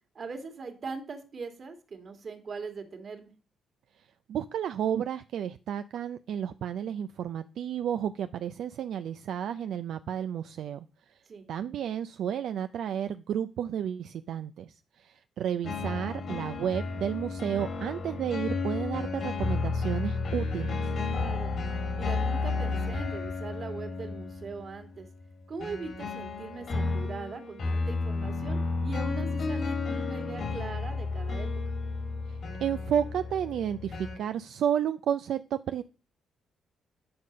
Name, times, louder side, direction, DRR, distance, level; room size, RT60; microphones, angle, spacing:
voice 1, 0.2-3.3 11.3-11.5 21.1-21.5 22.0-25.1 25.5-31.5, right 4 dB, 45° right, 7 dB, 2.0 m, -40 dB
voice 2, 4.3-10.8 11.5-20.9 32.3-35.8, right 9 dB, 70° right, 10 dB, 0.4 m, -32 dB
sound 1, 15.6-34.2, left 3 dB, 55° left, 1.9 m, -32 dB
8.6 x 5.5 x 5.2 m, 0.36 s
cardioid pair, 90°, 0 cm